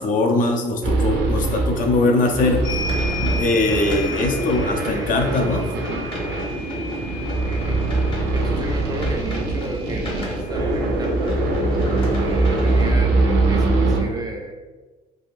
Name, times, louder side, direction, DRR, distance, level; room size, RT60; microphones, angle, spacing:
voice 1, 0.0-2.7 3.2-5.7 11.8-11.9, left 2 dB, 50° left, 3 dB, 0.5 m, -21 dB
sound 1, 0.8-14.0, right 2 dB, 90° right, 0.6 m, -23 dB
sound 2, 2.4-12.9, right 1 dB, 30° left, 0.9 m, -32 dB
tibetan prayer bell, 2.6-10.8 12.0-12.1 12.4-13.5, left 3 dB, 90° left, 0.7 m, -35 dB
voice 2, 7.4-7.9 8.3-11.4 12.1-14.5, right 2 dB, 25° right, 2 dB, 0.4 m, -33 dB
3.5 x 2.5 x 2.5 m, 1.3 s
cardioid pair, 110°, 17 cm